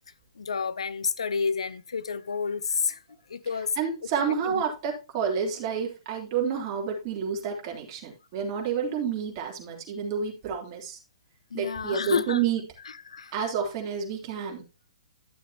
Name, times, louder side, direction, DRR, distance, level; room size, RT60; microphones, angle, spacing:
voice 1, 0.4-3.0 3.3-3.8 4.3-4.6 11.5-12.4 13.1-13.3, left 5 dB, 75° left, 0.6 m, -30 dB
voice 2, 3.8-11.0 11.5-12.6 13.3-14.6, right 6 dB, 40° right, 3.4 m, -29 dB
12.0 x 7.1 x 2.9 m
hypercardioid pair, 125°, 3 cm